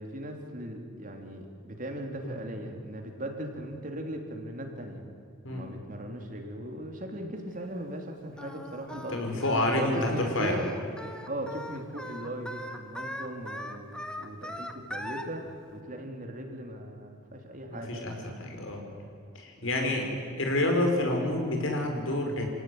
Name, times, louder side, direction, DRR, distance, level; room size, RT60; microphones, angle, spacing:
voice 1, 0.0-5.1 5.5-9.4 9.8-10.6 11.3-18.3 19.6-20.0, right 1 dB, 40° right, 3 dB, 3.4 m, -39 dB
Singing, 8.4-15.3, left 1 dB, 5° left, 1.5 m, -40 dB
voice 2, 8.9-10.6 17.7-18.8 19.3-20.0 20.4-22.5, left 1 dB, 75° left, 3 dB, 5.5 m, -28 dB
28.0 x 17.5 x 9.6 m, 2.5 s
head